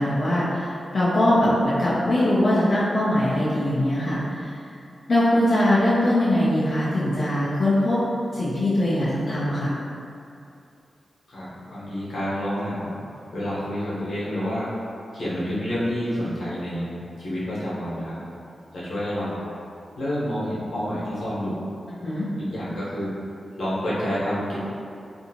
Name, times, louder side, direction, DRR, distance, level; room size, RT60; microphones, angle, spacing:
voice 1, 0.0-4.5 5.1-8.0 8.3-9.7 22.0-22.3, left 1 dB, 40° left, -10 dB, 0.4 m, -21 dB
voice 2, 11.3-12.9 13.3-14.7 15.1-18.2 18.7-19.4 19.9-21.7 22.4-23.1 23.6-24.6, equal, 75° left, -9 dB, 0.9 m, -28 dB
2.7 x 2.5 x 2.7 m, 2.5 s
wide cardioid pair, 160°, 0 cm